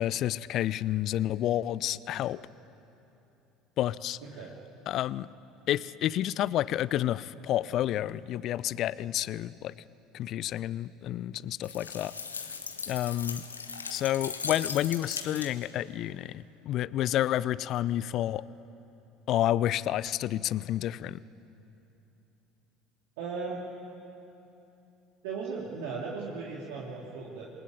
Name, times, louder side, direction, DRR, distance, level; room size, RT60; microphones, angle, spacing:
voice 1, 0.0-2.4 3.8-4.2 4.9-5.3 5.7-9.7 10.1-12.1 12.9-13.4 13.9-18.4 19.3-21.2, left 12 dB, 50° left, 20 dB, 0.6 m, -30 dB
voice 2, 4.2-4.5 23.2-23.6 25.2-27.5, right 4 dB, 65° right, -4 dB, 3.0 m, -37 dB
sound 1, 11.6-15.8, left 5 dB, 85° left, 1.3 m, -38 dB
27.5 x 20.5 x 9.5 m, 2.9 s
figure-of-eight pair, 65°, 0 cm